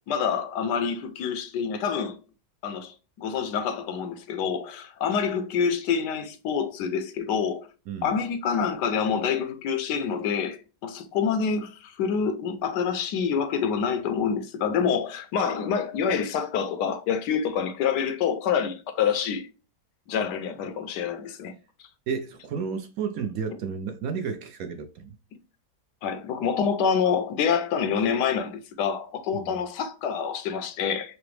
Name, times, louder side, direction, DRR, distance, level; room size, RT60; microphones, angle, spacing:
voice 1, 0.1-2.2 2.6-7.7 8.0-19.5 20.1-21.5 26.0-31.1, left 6 dB, 80° left, 1.2 m, -27 dB
voice 2, 22.1-25.1 29.3-29.5, right 6 dB, 70° right, 0.9 m, -32 dB
5.8 x 2.1 x 3.1 m
omnidirectional pair, 1.8 m